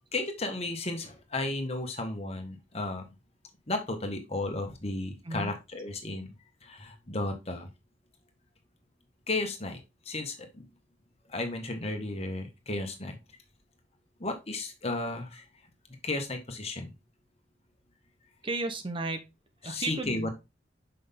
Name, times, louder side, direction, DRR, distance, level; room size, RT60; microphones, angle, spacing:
voice 1, 0.1-3.0 3.7-6.3 6.6-7.7 9.3-9.8 10.1-10.7 11.3-13.2 14.2-15.4 16.0-16.9 19.6-20.3, left 2 dB, 35° left, 5 dB, 1.5 m, -34 dB
voice 2, 18.4-19.2 19.6-20.3, right 2 dB, 30° right, 7 dB, 0.8 m, -33 dB
6.4 x 5.5 x 3.6 m, 0.24 s
head